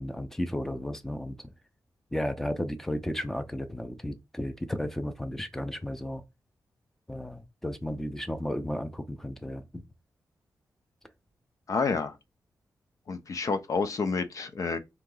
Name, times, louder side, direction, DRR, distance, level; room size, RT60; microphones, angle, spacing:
voice 1, 0.0-1.4 2.1-6.2 7.1-9.8, left 1 dB, 5° left, 0.6 m, -33 dB
voice 2, 11.7-12.2 13.1-14.8, left 4 dB, 55° left, 0.7 m, -29 dB
3.8 x 3.0 x 3.8 m
wide cardioid pair, 100°, 7 cm